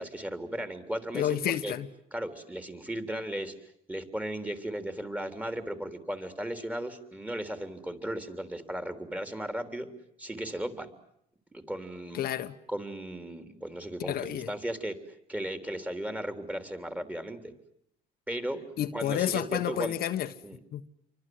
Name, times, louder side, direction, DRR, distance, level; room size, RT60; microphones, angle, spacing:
voice 1, 0.0-1.4 1.6-1.7 2.1-3.5 3.9-9.9 10.2-10.9 11.5-12.2 12.7-15.0 15.3-17.5 18.3-18.6 18.9-19.9 20.4-20.6, right 1 dB, 10° right, 3.5 m, -36 dB
voice 2, 1.1-1.9 12.1-12.5 14.0-14.5 18.8-20.3 20.7-20.9, left 11 dB, 65° left, 1.5 m, -30 dB
29.5 x 24.5 x 7.9 m
cardioid pair, 110°, 17 cm